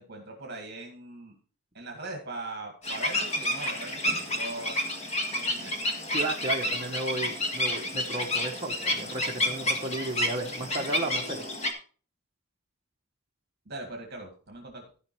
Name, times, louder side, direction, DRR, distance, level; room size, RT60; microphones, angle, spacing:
voice 1, 0.0-1.3 1.7-4.8 5.4-5.7 13.7-14.8, right 2 dB, 50° right, 1 dB, 2.0 m, -40 dB
sound 1, 2.8-11.7, left 1 dB, 30° left, 1.5 m, -30 dB
voice 2, 6.1-11.4, right 2 dB, 25° right, 0 dB, 1.2 m, -34 dB
13.5 x 5.2 x 4.6 m, 0.41 s
head